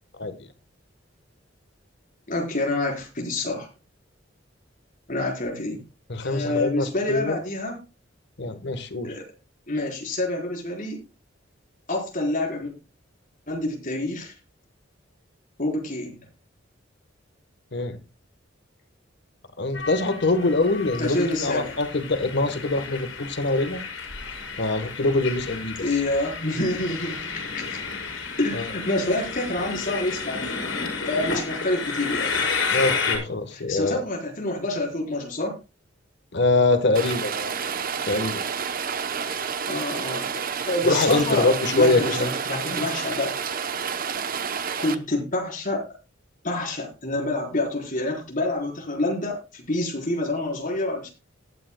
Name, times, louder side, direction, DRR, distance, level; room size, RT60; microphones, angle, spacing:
voice 1, 2.3-3.7 5.1-5.8 6.2-7.8 9.0-9.2 9.7-11.0 11.9-12.7 13.5-14.3 15.6-16.2 21.0-21.8 25.8-27.8 28.4-30.6 31.1-32.4 33.5-35.6 39.6-43.4 44.8-45.9 46.4-51.1, left 2 dB, 45° left, 4.2 m, -27 dB
voice 2, 6.1-7.4 8.4-9.1 17.7-18.0 19.6-23.8 24.6-25.8 28.5-28.7 32.7-34.0 36.3-37.5 38.1-38.4 40.8-42.3 42.7-42.8, left 2 dB, 60° left, 1.2 m, -24 dB
Train, 19.7-33.2, left 4 dB, 85° left, 4.9 m, -31 dB
Rain, 36.9-44.9, right 6 dB, 50° right, 0.8 m, -29 dB
19.0 x 9.1 x 2.2 m
head